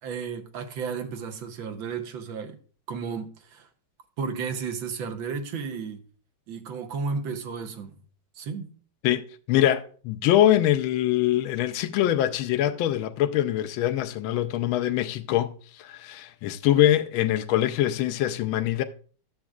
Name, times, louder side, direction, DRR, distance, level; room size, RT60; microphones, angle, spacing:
voice 1, 0.0-2.6 2.9-3.7 4.2-6.0 6.5-7.9 8.4-8.7, right 5 dB, 75° right, 1.6 m, -33 dB
voice 2, 9.5-15.5 15.8-18.8, left 12 dB, 80° left, 1.4 m, -23 dB
11.5 x 7.2 x 2.4 m
omnidirectional pair, 2.2 m